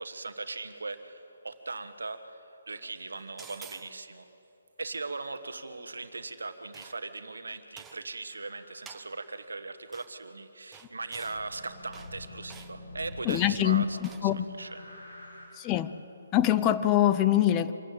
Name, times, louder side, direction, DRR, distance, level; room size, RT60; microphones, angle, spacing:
voice 1, 0.0-4.3 4.8-15.0, right 3 dB, 80° right, 10 dB, 1.3 m, -39 dB
sound 1, 3.4-3.9 6.7-7.2 7.8-8.0 8.9-9.1 9.9-10.1 10.7-11.4 11.9-12.1 12.5-12.7 13.3-13.5 14.0-14.3, right 7 dB, 15° right, 0.9 m, -49 dB
sound 2, 8.3-9.7 11.2-15.5, left 2 dB, 75° left, 6.0 m, -48 dB
voice 2, 13.3-13.8 14.2-14.4 15.6-15.9 16.3-17.7, left 12 dB, 25° left, 12 dB, 0.6 m, -24 dB
25.0 x 13.0 x 8.8 m, 3.0 s
figure-of-eight pair, 140°, 0 cm